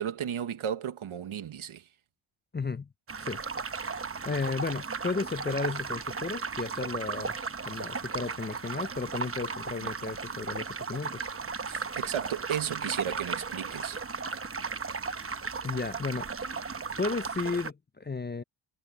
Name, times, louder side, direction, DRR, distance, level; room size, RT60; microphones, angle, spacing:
voice 1, 0.0-1.9 11.6-14.0, right 9 dB, 75° right, 1.4 m, -34 dB
voice 2, 2.5-2.9 3.2-3.4 4.2-7.3 7.6-11.3 15.6-16.6 17.0-18.4, left 4 dB, 20° left, 0.5 m, -33 dB
sound 1, 3.1-17.7, right 5 dB, 25° right, 0.9 m, -36 dB
cardioid pair, 85°, 50 cm